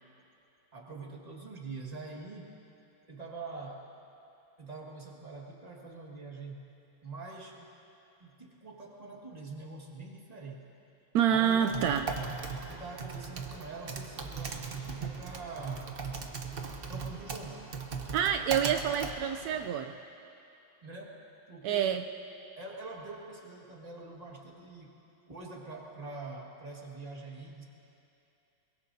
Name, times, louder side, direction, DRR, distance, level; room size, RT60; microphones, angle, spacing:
voice 1, 0.7-2.6 3.1-3.9 4.6-6.7 7.0-7.7 8.2-10.7 11.3-11.9 12.7-16.1 16.9-17.8 20.8-22.1 22.6-27.6, right 3 dB, 20° right, -1 dB, 1.6 m, -45 dB
voice 2, 11.1-12.1 18.1-19.9 21.6-22.0, right 9 dB, 80° right, 6 dB, 0.8 m, -27 dB
Typing, 11.5-19.7, right 5 dB, 45° right, 0.8 m, -39 dB
22.5 x 22.5 x 2.7 m, 2.7 s
omnidirectional pair, 2.2 m